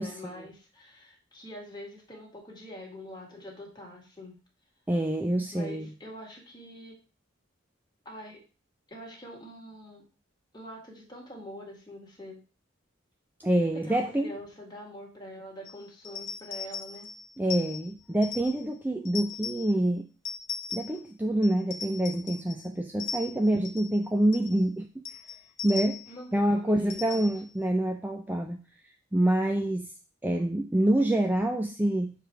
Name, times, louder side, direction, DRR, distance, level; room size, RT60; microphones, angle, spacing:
voice 1, 0.0-4.4 5.5-7.0 8.1-8.4 8.9-10.0 10.5-12.4 13.7-17.1 26.1-27.2, equal, 25° left, -1 dB, 1.9 m, -44 dB
voice 2, 4.9-5.9 13.4-14.3 17.4-20.1 20.7-24.9 25.6-26.0 26.3-28.6 29.1-29.9 30.2-32.1, right 1 dB, 10° right, 3 dB, 0.4 m, -26 dB
sound 1, 15.6-18.7 19.0-19.7 20.2-21.1 21.4-22.7 23.0-24.0 24.3-24.6 25.0-26.2 26.9-27.5, left 5 dB, 80° left, 1.1 m, -39 dB
6.9 x 3.3 x 4.6 m, 0.34 s
head